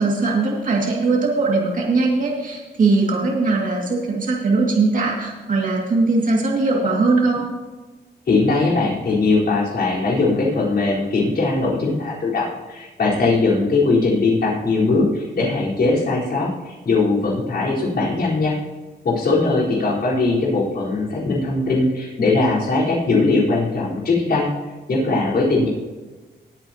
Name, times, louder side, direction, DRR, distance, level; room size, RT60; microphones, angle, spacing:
voice 1, 0.0-7.4, right 3 dB, 50° right, -2 dB, 2.2 m, -20 dB
voice 2, 8.3-18.6 19.0-24.5 24.9-25.7, left 3 dB, 60° left, -6 dB, 4.2 m, -20 dB
20.0 x 8.9 x 2.9 m, 1.2 s
wide cardioid pair, 130°, 18 cm